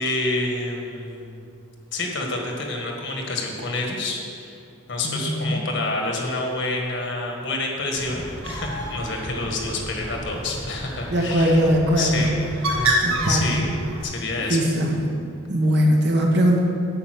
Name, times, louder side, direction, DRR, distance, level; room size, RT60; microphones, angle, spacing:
voice 1, 0.0-1.4 1.9-4.6 4.9-11.6 12.0-12.3 12.6-12.9 13.3-13.7 14.0-14.6, left 2 dB, 60° left, 1 dB, 1.6 m, -28 dB
voice 2, 5.0-5.6 11.1-12.3 13.0-13.5 14.5-15.1 15.5-16.6, equal, 55° right, 0 dB, 1.3 m, -20 dB
Bird, 7.9-14.0, right 1 dB, 90° right, 1.8 m, -29 dB
8.9 x 5.6 x 7.7 m, 2.4 s
head